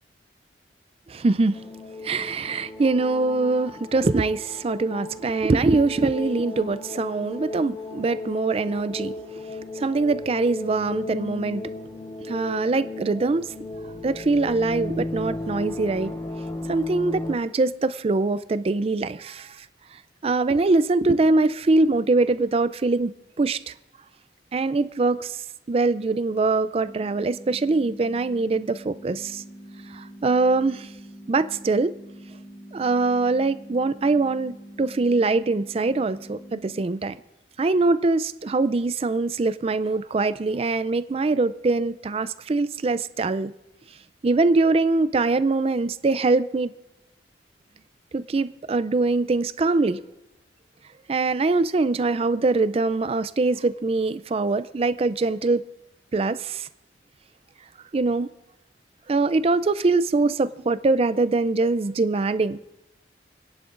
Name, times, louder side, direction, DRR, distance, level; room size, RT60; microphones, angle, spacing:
voice 1, 1.1-1.6 2.0-9.2 9.8-11.6 12.3-13.5 14.0-16.1 16.7-19.7 20.2-23.1 23.4-23.7 24.5-25.4 25.7-29.4 29.9-30.9 31.3-32.0 32.7-37.1 37.6-43.5 44.2-46.7 48.1-50.0 51.1-55.6 56.1-56.7 57.9-58.3 59.1-62.6, right 3 dB, 35° right, 0.4 m, -23 dB
sound 1, 1.5-17.4, left 2 dB, 20° left, 0.6 m, -35 dB
sound 2, 26.8-36.8, right 1 dB, 35° left, 2.0 m, -44 dB
28.5 x 10.5 x 2.5 m
head